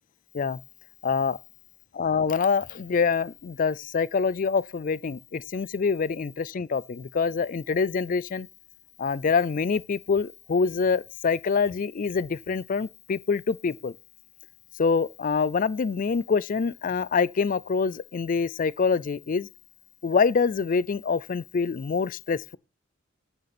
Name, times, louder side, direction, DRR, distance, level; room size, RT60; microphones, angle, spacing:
voice 1, 1.0-1.4 1.9-8.5 9.0-13.9 14.8-19.5 20.0-22.6, left 5 dB, 40° left, 0.4 m, -25 dB
9.8 x 6.5 x 4.3 m
head